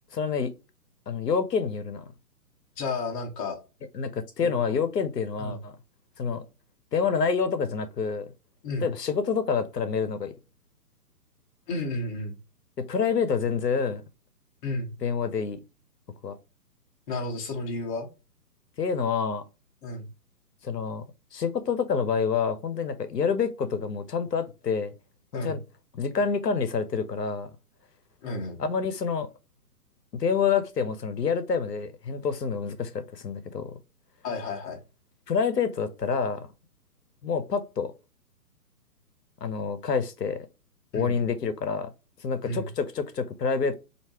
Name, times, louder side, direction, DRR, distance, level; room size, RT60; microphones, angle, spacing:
voice 1, 0.1-0.5 1.1-2.0 3.9-5.7 6.2-6.4 6.9-8.3 8.8-10.3 12.8-14.0 15.0-15.6 16.2-16.3 18.8-19.4 20.6-21.0 21.3-24.9 25.3-25.6 26.0-27.5 28.6-29.3 30.1-33.7 35.3-36.5 37.2-37.9 39.4-40.5 40.9-41.9 42.2-43.8, left 6 dB, 90° left, 0.7 m, -27 dB
voice 2, 2.8-3.6 4.4-4.7 5.4-5.6 8.6-8.9 11.7-12.4 14.6-14.9 17.1-18.1 19.8-20.1 25.3-25.6 28.2-28.6 34.2-34.8 40.9-41.1 42.4-42.7, left 2 dB, 25° left, 0.9 m, -32 dB
4.5 x 2.7 x 2.8 m
figure-of-eight pair, 135°, 47 cm